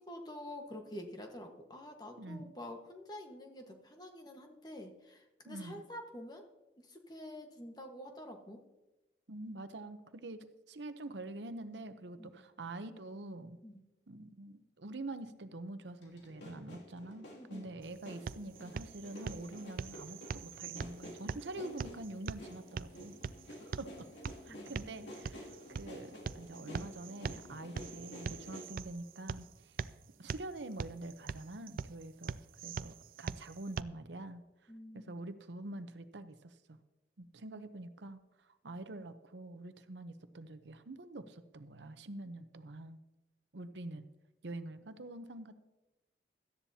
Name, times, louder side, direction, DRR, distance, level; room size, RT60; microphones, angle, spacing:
voice 1, 0.0-6.4 6.8-8.6 12.2-12.4 13.6-13.8 17.3-17.7 24.5-24.7 34.7-35.3, left 1 dB, 25° left, 3 dB, 1.4 m, -48 dB
voice 2, 2.2-2.5 5.5-5.8 9.3-13.6 14.1-23.1 23.6-24.1 24.4-29.8 30.2-34.4 34.9-36.8 37.2-38.2 38.5-43.0 43.5-44.1 44.4-45.6, right 2 dB, 85° right, 11 dB, 0.8 m, -46 dB
sound 1, 16.0-28.7, left 1 dB, 90° left, 2.6 m, -51 dB
sound 2, 17.8-33.8, right 5 dB, 50° right, 0.3 m, -44 dB
17.5 x 13.0 x 2.8 m, 1.0 s
head